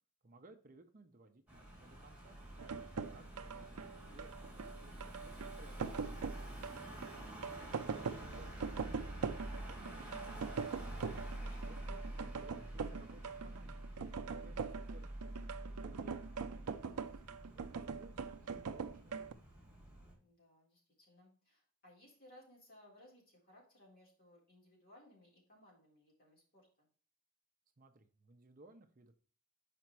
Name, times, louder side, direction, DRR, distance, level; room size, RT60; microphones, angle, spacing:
voice 1, 0.2-2.4 3.1-5.9 6.5-10.8 11.4-13.9 14.1-14.6 14.9-15.3 15.8-19.4 27.8-29.1, right 2 dB, 40° right, 6 dB, 0.6 m, -61 dB
Car passing by / Engine, 1.5-20.1, right 1 dB, 5° right, 2.9 m, -48 dB
sound 1, 2.6-19.3, right 5 dB, 90° right, 0.5 m, -42 dB
voice 2, 2.9-3.2 11.3-11.7 14.3-14.5 20.2-26.9, left 1 dB, 40° left, -4 dB, 3.6 m, -64 dB
5.6 x 5.1 x 4.5 m, 0.44 s
head